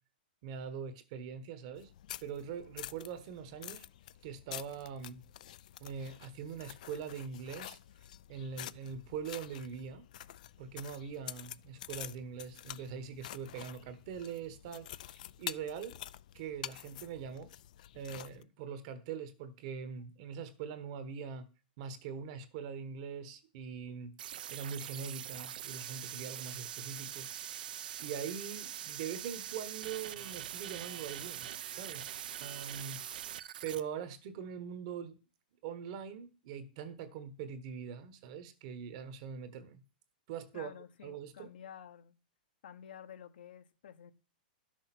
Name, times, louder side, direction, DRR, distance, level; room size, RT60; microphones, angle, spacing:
voice 1, 0.4-1.9 2.2-3.8 4.2-5.2 5.8-7.8 8.3-10.1 10.6-16.0 16.3-17.5 17.9-21.5 21.8-27.7 28.0-32.1 32.4-33.0 33.6-35.2 35.6-39.8 40.3-40.7 41.0-41.5, right 7 dB, 40° right, 1.2 m, -43 dB
sound 1, 1.8-18.4, left 12 dB, 50° left, 0.4 m, -48 dB
sound 2, 24.2-33.8, right 10 dB, 65° right, 0.7 m, -43 dB
voice 2, 40.5-42.2 42.6-44.1, left 9 dB, 70° left, 1.1 m, -51 dB
11.5 x 6.4 x 6.0 m
hypercardioid pair, 165°, 5 cm